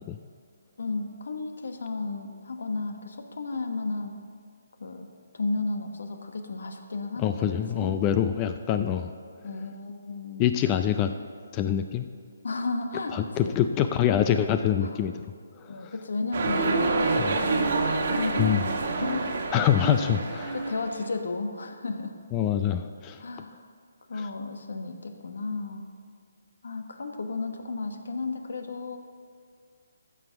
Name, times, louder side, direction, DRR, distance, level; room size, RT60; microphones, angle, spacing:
voice 1, 0.8-4.1 4.8-5.1 5.3-8.0 9.4-10.5 12.4-13.6 14.8-15.0 15.7-19.3 19.7-20.2 20.5-22.2 23.2-23.6 24.1-25.9 26.6-29.0, left 3 dB, 70° left, 6 dB, 1.2 m, -33 dB
voice 2, 7.2-9.1 10.4-11.1 11.5-12.1 13.1-15.1 15.8-15.9 17.2-17.4 18.4-18.6 19.5-20.6 22.3-23.2, left 10 dB, 20° left, 8 dB, 0.3 m, -25 dB
sound 1, 16.3-21.0, right 3 dB, 50° right, 1.4 m, -27 dB
14.5 x 6.0 x 5.8 m, 2.1 s
hypercardioid pair, 165°, 0 cm